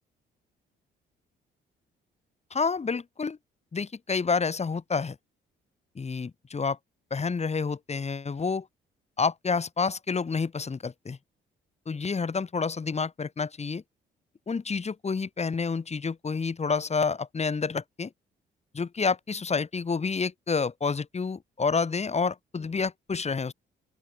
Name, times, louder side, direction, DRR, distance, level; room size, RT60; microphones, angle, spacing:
voice 1, 2.5-3.4 3.7-5.2 5.9-6.8 7.1-8.7 9.2-11.2 11.9-13.8 14.5-18.1 18.7-23.5, left 5 dB, 35° left, 4.6 m, -29 dB
open air
cardioid pair, 90°, 20 cm